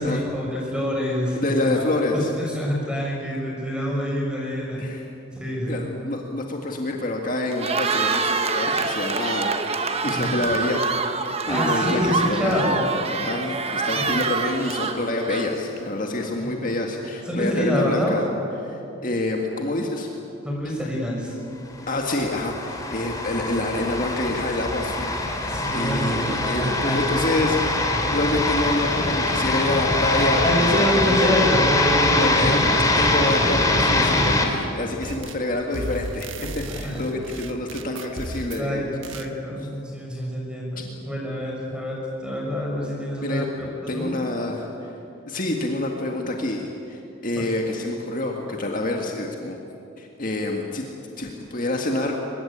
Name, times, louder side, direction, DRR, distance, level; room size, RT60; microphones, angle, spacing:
voice 1, 0.0-4.8 5.4-5.8 10.0-10.4 11.5-12.8 13.9-14.1 16.4-16.6 17.3-18.1 20.4-21.3 25.5-27.1 27.4-27.5 30.4-32.8 33.1-33.2 36.7-37.0 38.6-43.7 43.9-44.1 47.4-47.5, equal, 5° right, -2 dB, 6.4 m, -26 dB
voice 2, 1.4-2.3 4.8-5.1 5.7-18.3 18.6-20.1 21.9-31.6 32.1-38.9 43.2-43.5 43.9-44.7 45.3-49.6 50.0-50.8 51.2-52.2, left 2 dB, 40° left, 1 dB, 1.9 m, -27 dB
Cheering, 7.5-15.7, right 4 dB, 30° right, 1.3 m, -26 dB
sound 1, 21.9-34.5, left 2 dB, 15° left, 2.7 m, -23 dB
sound 2, 35.0-35.5 35.7-38.7 39.0-39.3, right 2 dB, 75° right, 1.4 m, -35 dB
23.5 x 22.0 x 8.7 m, 2.9 s
head